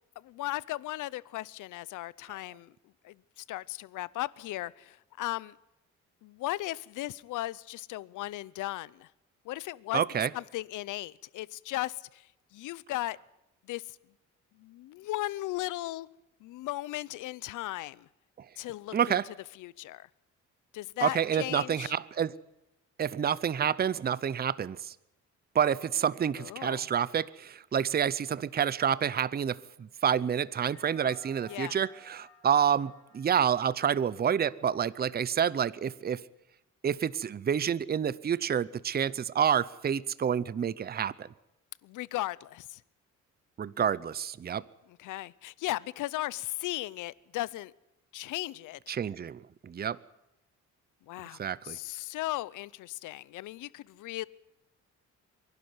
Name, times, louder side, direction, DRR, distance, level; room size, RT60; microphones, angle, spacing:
voice 1, 0.2-2.7 3.0-5.6 6.2-9.1 9.4-10.0 10.3-12.3 12.5-13.2 13.7-14.0 14.6-16.1 16.4-18.1 18.6-19.2 19.6-20.1 20.7-21.9 26.4-26.9 31.5-31.8 41.8-42.8 45.0-47.7 48.1-49.0 51.1-51.4 51.6-54.2, left 16 dB, 85° left, 0.7 m, -36 dB
voice 2, 9.9-10.3 18.4-18.5 18.9-19.3 21.0-22.3 23.0-24.9 25.5-36.2 36.8-41.3 43.6-44.6 48.9-50.0 51.4-51.8, right 8 dB, 30° right, 0.6 m, -28 dB
sound 1, 30.5-35.1, equal, 60° left, 5.1 m, -58 dB
24.0 x 12.0 x 9.5 m
cardioid pair, 90°, 30 cm